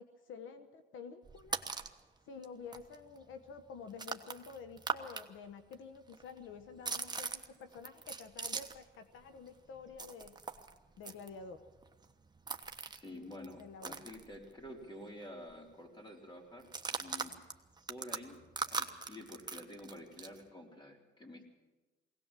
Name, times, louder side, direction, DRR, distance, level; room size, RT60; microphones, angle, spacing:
voice 1, 0.0-1.6 2.2-10.4 11.0-11.6 13.6-14.0, left 5 dB, 80° left, 8 dB, 1.2 m, -49 dB
cracking walnuts underfoot, 1.2-2.0 2.4-2.5 2.7-5.2 5.5-8.9 9.2-14.8 15.1-15.2 15.5-15.8 16.6-20.4, right 4 dB, 20° right, 1.2 m, -42 dB
voice 2, 12.9-17.3 17.9-21.5, left 1 dB, 25° left, 1 dB, 4.1 m, -50 dB
20.5 x 17.5 x 7.5 m, 1.2 s
cardioid pair, 90°, 20 cm